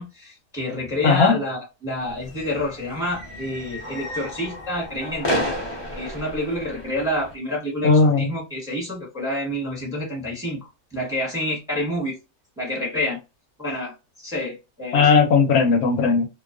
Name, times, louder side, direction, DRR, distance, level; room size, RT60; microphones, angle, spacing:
voice 1, 0.0-5.3 5.9-12.2 12.6-13.2 13.6-15.1, left 1 dB, 5° right, 0.8 m, -28 dB
voice 2, 1.0-1.4 7.8-8.3 14.9-16.3, left 4 dB, 75° left, 1.0 m, -17 dB
sound 1, 2.0-7.3, equal, 30° left, 0.5 m, -32 dB
2.5 x 2.3 x 2.3 m
omnidirectional pair, 1.6 m